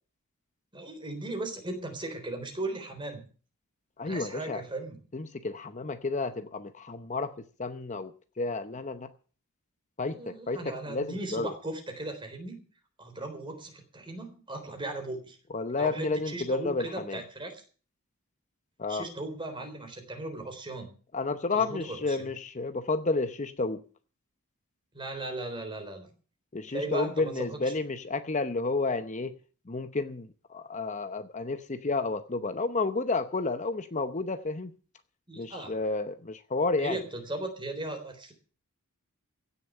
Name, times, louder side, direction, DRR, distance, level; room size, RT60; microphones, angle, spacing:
voice 1, 0.7-3.2 4.0-5.0 10.1-12.6 13.0-15.4 15.8-17.5 18.9-20.9 21.5-22.3 24.9-26.1 26.7-27.6 35.3-35.8 36.8-38.3, right 2 dB, 20° right, 3.8 m, -37 dB
voice 2, 4.0-4.6 5.1-7.3 7.6-9.1 10.0-11.5 15.5-17.2 18.8-19.1 21.1-23.8 26.5-29.4 29.7-34.7 35.3-37.0, left 3 dB, 35° left, 0.8 m, -31 dB
16.0 x 7.0 x 8.7 m
head